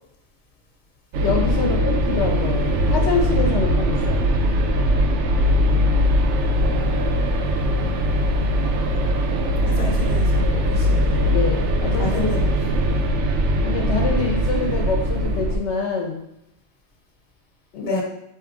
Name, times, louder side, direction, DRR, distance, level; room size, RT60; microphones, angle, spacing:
sound 1, 1.1-15.6, equal, 85° right, 0.9 m, -20 dB
voice 1, 1.2-4.3 11.3-12.4 13.6-16.2 17.7-18.0, left 4 dB, 80° left, 1 dB, 0.9 m, -25 dB
voice 2, 9.6-11.4 12.0-12.5 17.8-18.0, left 1 dB, 45° left, 0 dB, 1.0 m, -30 dB
4.5 x 3.0 x 3.7 m, 0.81 s
omnidirectional pair, 1.2 m